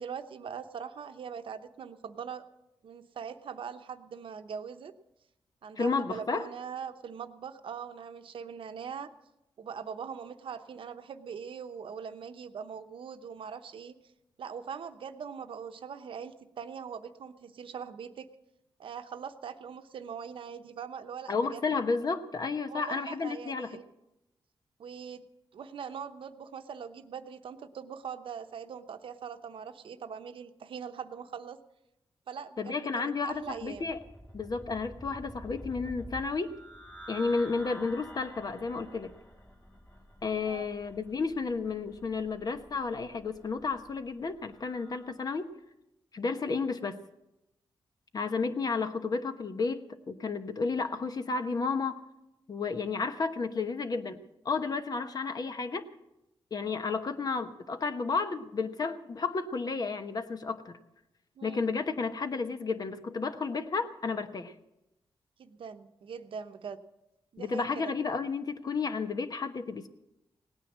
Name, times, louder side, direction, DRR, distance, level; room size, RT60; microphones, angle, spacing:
voice 1, 0.0-2.4 2.8-4.9 5.6-9.1 9.6-13.9 14.4-18.3 18.8-21.7 22.7-23.8 24.8-25.2 25.5-31.6 32.3-33.9 40.5-40.7 61.4-61.7 65.4-66.8 67.3-67.9, right 7 dB, 70° right, 9 dB, 0.9 m, -42 dB
voice 2, 5.8-6.5 21.3-23.8 32.6-34.0 34.3-36.5 37.1-39.1 40.2-45.5 46.1-47.0 48.1-52.0 52.5-55.9 56.5-60.8 61.4-64.5 67.4-69.9, left 4 dB, 45° left, 9 dB, 1.1 m, -32 dB
sound 1, 33.3-45.2, equal, 20° left, 3.1 m, -49 dB
17.5 x 9.3 x 7.3 m, 0.92 s
cardioid pair, 95°, 9 cm